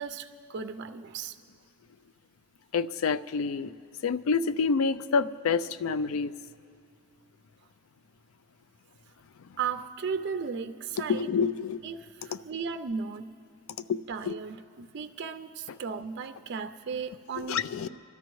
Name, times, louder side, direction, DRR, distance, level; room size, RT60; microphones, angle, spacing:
voice 1, 0.0-1.4 9.6-11.3 11.8-13.3 14.1-17.8, right 6 dB, 55° right, 9 dB, 0.4 m, -36 dB
voice 2, 2.7-3.7 4.0-6.3 11.1-11.8 13.9-14.0 14.3-14.4 17.5-17.9, left 5 dB, 70° left, 14 dB, 0.4 m, -27 dB
26.0 x 12.5 x 3.1 m, 2.2 s
head